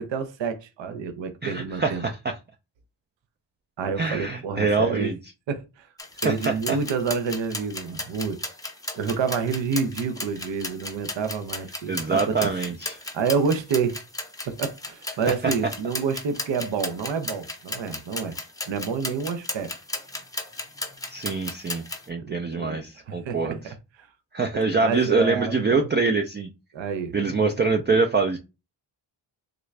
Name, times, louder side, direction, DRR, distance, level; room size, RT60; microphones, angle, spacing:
voice 1, 0.0-2.0 3.8-5.1 5.5-5.9 6.2-8.4 8.9-12.5 12.9-14.0 14.4-18.4 18.7-19.7 22.2-24.1 24.5-25.9 26.7-27.1, right 5 dB, 65° right, 0.7 m, -28 dB
voice 2, 1.4-2.3 4.0-5.2 6.2-6.8 11.9-13.0 21.1-23.6 24.3-26.5 27.1-28.4, right 4 dB, 25° right, 0.4 m, -24 dB
sound 1, 6.0-22.1, left 2 dB, 10° left, 0.7 m, -35 dB
3.7 x 2.3 x 3.2 m
cardioid pair, 65°, 47 cm